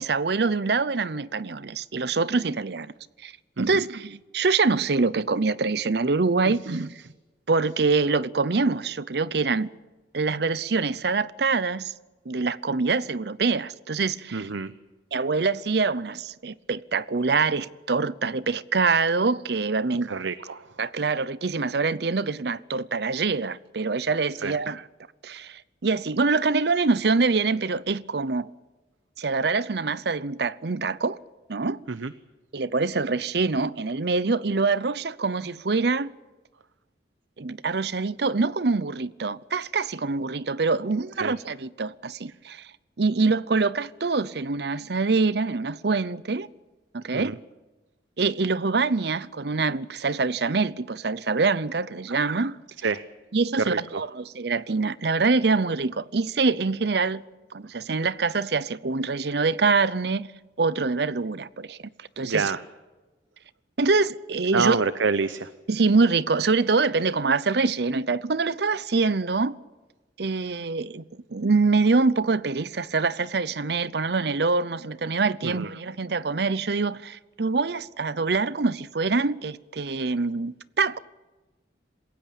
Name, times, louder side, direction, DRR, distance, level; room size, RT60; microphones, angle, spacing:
voice 1, 0.0-2.9 3.2-3.3 3.6-7.0 7.5-9.7 10.1-11.9 12.3-14.5 15.1-20.1 20.8-24.8 25.2-28.5 29.2-31.2 31.5-31.8 32.5-36.1 37.4-42.7 43.0-46.5 46.9-47.4 48.2-52.6 53.3-57.2 57.5-60.3 60.6-62.5 63.8-64.8 65.7-69.6 70.2-71.0 71.3-81.0, right 4 dB, 60° right, 0.7 m, -25 dB
voice 2, 14.3-14.7 20.1-20.7 24.4-24.5 31.9-32.1 41.2-41.3 47.1-47.3 52.8-53.0 53.6-54.0 62.2-62.6 64.5-65.5 75.4-75.7, right 4 dB, 90° right, 0.8 m, -27 dB
27.0 x 16.0 x 8.8 m
head